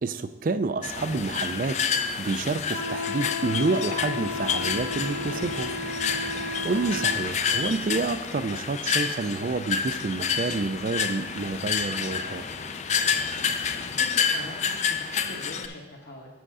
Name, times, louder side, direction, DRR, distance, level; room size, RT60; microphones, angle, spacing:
voice 1, 0.0-1.8 2.2-5.7 6.6-12.4, right 3 dB, 45° right, 12 dB, 0.4 m, -28 dB
sound 1, 0.8-15.7, left 6 dB, 35° left, 0.4 m, -29 dB
Wind instrument woodwind instrument, 2.7-7.2, left 3 dB, 80° left, 1.9 m, -34 dB
voice 2, 13.7-16.3, left 1 dB, 60° left, -5 dB, 1.2 m, -43 dB
7.8 x 6.4 x 4.8 m, 1.1 s
head